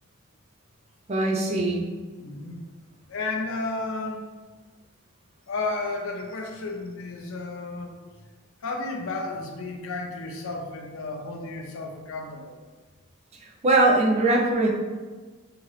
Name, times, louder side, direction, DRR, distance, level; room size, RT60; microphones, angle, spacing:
voice 1, 1.1-1.8 13.6-14.7, right 2 dB, 30° right, -1 dB, 0.4 m, -21 dB
voice 2, 2.2-2.6 3.1-4.2 5.5-8.0 8.6-12.6, left 3 dB, 65° left, 2 dB, 0.5 m, -32 dB
2.8 x 2.4 x 3.2 m, 1.4 s
head